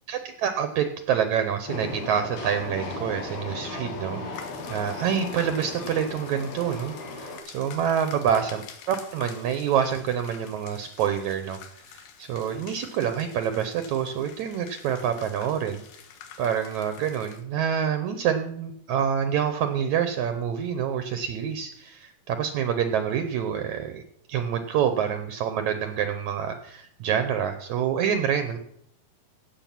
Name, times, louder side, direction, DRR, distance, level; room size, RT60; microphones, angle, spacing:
voice 1, 0.1-11.6 11.9-15.8 16.4-24.0 24.3-28.6, right 8 dB, 80° right, 8 dB, 1.7 m, -27 dB
Train, 1.7-7.4, left 3 dB, 75° left, 4.1 m, -36 dB
sound 1, 4.3-17.4, left 8 dB, 90° left, 3.2 m, -48 dB
16.5 x 7.3 x 5.9 m, 0.73 s
omnidirectional pair, 4.3 m